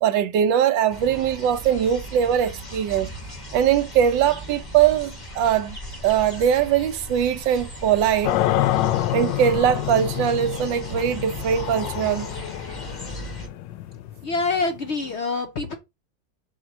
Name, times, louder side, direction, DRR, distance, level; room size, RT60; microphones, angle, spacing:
voice 1, 0.0-3.1 3.5-5.8 6.0-8.4 9.1-12.3, right 9 dB, 85° right, 1.4 m, -21 dB
sound 1, 0.9-13.5, equal, 15° left, 1.3 m, -38 dB
sound 2, 8.2-15.2, left 14 dB, 80° left, 1.2 m, -27 dB
voice 2, 14.2-15.7, left 3 dB, 55° left, 0.7 m, -26 dB
7.0 x 3.0 x 6.0 m
omnidirectional pair, 2.0 m